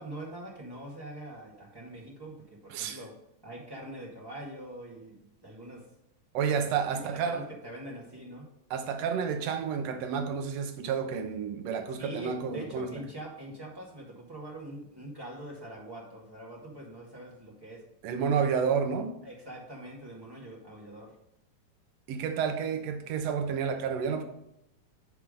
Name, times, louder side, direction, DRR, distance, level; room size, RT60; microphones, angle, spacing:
voice 1, 0.0-3.1 3.4-5.8 6.9-8.5 11.9-17.8 18.1-18.6 19.2-21.1, right 1 dB, 10° right, 1.2 m, -43 dB
voice 2, 6.3-7.4 8.7-12.9 18.0-19.1 22.1-24.2, right 6 dB, 70° right, 1.6 m, -30 dB
10.5 x 3.7 x 5.0 m
omnidirectional pair, 3.9 m